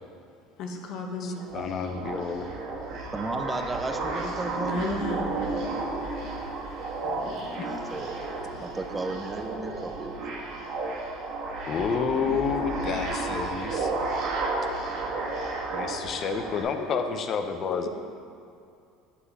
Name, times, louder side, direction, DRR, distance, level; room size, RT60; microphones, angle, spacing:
voice 1, 0.6-1.4 4.6-5.3 16.8-17.1 17.5-17.9, left 3 dB, 60° left, 2 dB, 1.2 m, -34 dB
voice 2, 1.2-2.5 7.6-7.9 11.7-13.9 15.7-17.9, left 6 dB, 45° left, 7 dB, 0.7 m, -30 dB
sound 1, 1.3-16.6, right 3 dB, 60° right, 1.7 m, -32 dB
voice 3, 3.1-5.0 7.5-8.2 8.6-10.2, right 2 dB, 15° right, 7 dB, 0.6 m, -34 dB
sound 2, 4.0-9.5, equal, ahead, 2.3 m, -52 dB
8.3 x 7.6 x 4.2 m, 2.4 s
supercardioid pair, 115°, 0 cm